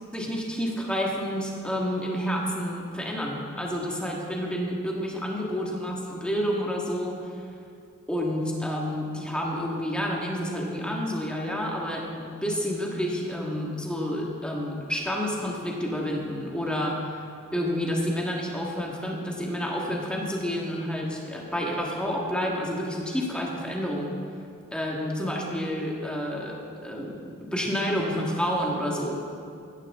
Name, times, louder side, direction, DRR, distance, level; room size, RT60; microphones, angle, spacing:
voice 1, 0.1-7.2 8.1-17.0 17.5-24.2 24.7-29.2, equal, 5° left, -2 dB, 1.8 m, -29 dB
16.0 x 13.5 x 3.7 m, 2.5 s
head